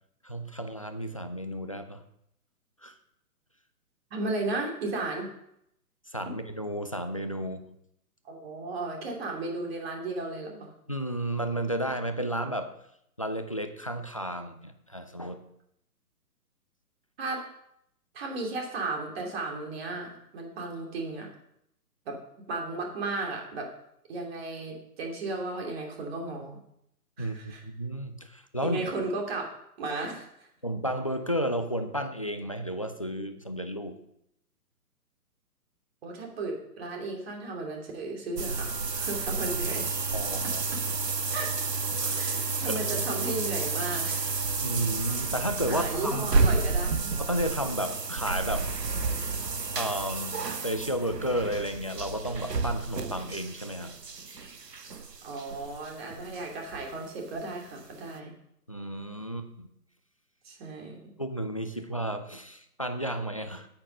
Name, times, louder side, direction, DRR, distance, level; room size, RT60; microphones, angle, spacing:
voice 1, 0.2-2.0 2.8-2.9 6.1-7.8 10.9-12.7 13.2-15.4 27.2-28.9 30.6-34.0 40.1-40.6 42.0-42.3 42.7-42.8 44.6-46.3 47.2-48.7 49.8-53.9 58.7-59.7 61.2-63.7, equal, 25° left, 9 dB, 0.4 m, -32 dB
voice 2, 4.1-5.3 8.2-10.7 17.2-17.4 18.1-21.3 22.0-22.2 22.5-23.7 24.1-26.6 27.2-27.6 28.6-29.5 29.8-30.5 36.0-39.9 40.4-40.5 41.3-41.6 42.1-44.3 45.6-47.1 55.2-58.3 60.4-61.1, right 3 dB, 40° right, 1 dB, 3.1 m, -35 dB
sound 1, 38.4-57.1 57.3-57.4 57.9-58.0, right 4 dB, 90° right, 1.1 m, -31 dB
9.4 x 8.9 x 5.5 m, 0.77 s
figure-of-eight pair, 135°, 47 cm